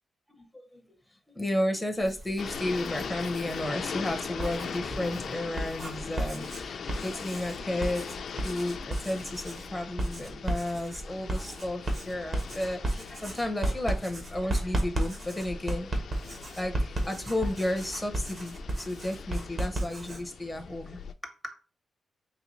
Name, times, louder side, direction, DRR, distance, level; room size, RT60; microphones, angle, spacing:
voice 1, 1.3-8.0 8.4-15.9 16.6-21.3, left 1 dB, 5° left, 0.6 m, -33 dB
Writing, 2.0-3.6 4.2-20.2, right 1 dB, 40° right, 0.9 m, -34 dB
sound 1, 2.4-21.1, left 6 dB, 60° left, 0.3 m, -40 dB
4.0 x 3.0 x 3.0 m
wide cardioid pair, 125°, 0 cm